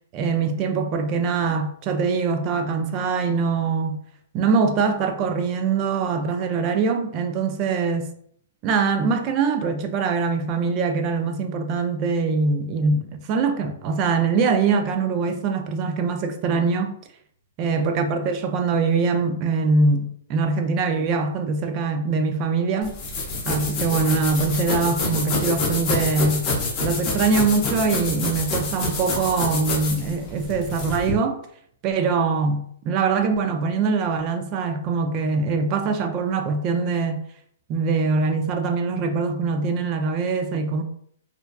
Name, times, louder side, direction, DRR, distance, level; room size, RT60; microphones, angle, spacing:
voice 1, 0.1-4.0 4.3-8.1 8.6-17.0 17.6-23.0 23.5-26.5 26.8-31.4 31.8-37.2 37.7-40.8, right 4 dB, 30° right, 0.3 m, -23 dB
sound 1, 22.8-31.1, left 3 dB, 30° left, 0.6 m, -27 dB
2.5 x 2.2 x 2.2 m
hypercardioid pair, 150°, 0 cm